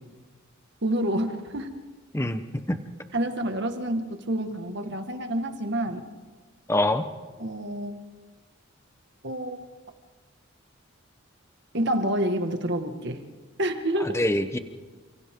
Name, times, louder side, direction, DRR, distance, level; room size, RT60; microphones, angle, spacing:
voice 1, 0.8-1.7 3.1-6.0 7.4-7.9 9.2-9.6 11.7-13.2 13.6-14.2, right 1 dB, 55° right, 6 dB, 2.0 m, -28 dB
voice 2, 2.1-2.8 6.7-7.1 14.0-14.6, left 1 dB, 15° left, 9 dB, 1.1 m, -25 dB
29.5 x 27.0 x 3.9 m, 1.3 s
head